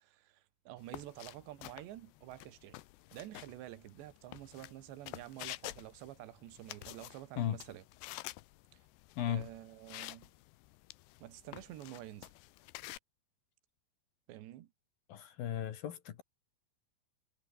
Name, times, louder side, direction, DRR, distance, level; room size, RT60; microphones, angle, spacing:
voice 1, 0.0-2.8 3.1-7.8 8.7-8.8 9.3-10.3 11.2-12.3 14.3-14.7, right 14 dB, 75° right, 3.6 m, -49 dB
sound 1, 0.8-13.0, left 18 dB, 75° left, 2.8 m, -50 dB
voice 2, 9.2-9.5 15.1-16.2, left 11 dB, 60° left, 3.1 m, -36 dB
omnidirectional pair, 5.3 m